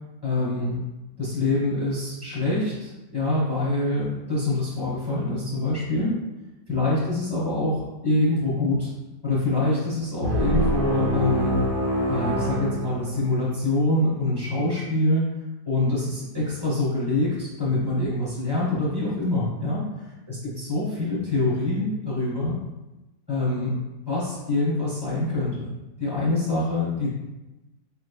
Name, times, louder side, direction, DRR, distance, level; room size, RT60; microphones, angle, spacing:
voice 1, 0.2-0.8 1.2-6.1 6.7-8.9 9.2-11.6 12.1-15.2 15.6-22.6 23.3-23.8 24.1-25.7 26.0-27.1, left 2 dB, 20° left, -7 dB, 0.9 m, -25 dB
sound 1, 10.2-13.6, equal, 60° right, 1.4 m, -25 dB
5.3 x 3.3 x 2.2 m, 1.0 s
omnidirectional pair, 1.7 m